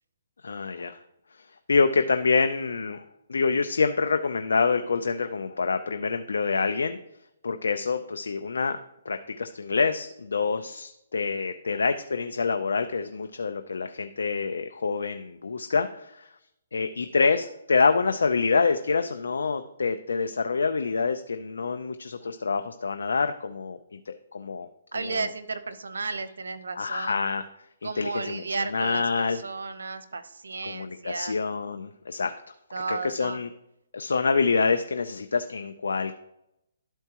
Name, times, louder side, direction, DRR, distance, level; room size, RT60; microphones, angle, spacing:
voice 1, 0.4-1.0 1.7-3.0 3.3-7.0 7.4-8.8 9.1-16.2 16.7-23.8 24.1-24.7 25.0-25.2 26.8-27.4 28.0-29.4 30.7-32.3 32.9-33.5 33.9-36.2, left 4 dB, 85° left, 7 dB, 0.5 m, -26 dB
voice 2, 24.9-27.3 27.8-31.4 32.7-33.5, right 4 dB, 85° right, 11 dB, 0.8 m, -34 dB
12.0 x 4.5 x 2.9 m, 0.82 s
hypercardioid pair, 150°, 0 cm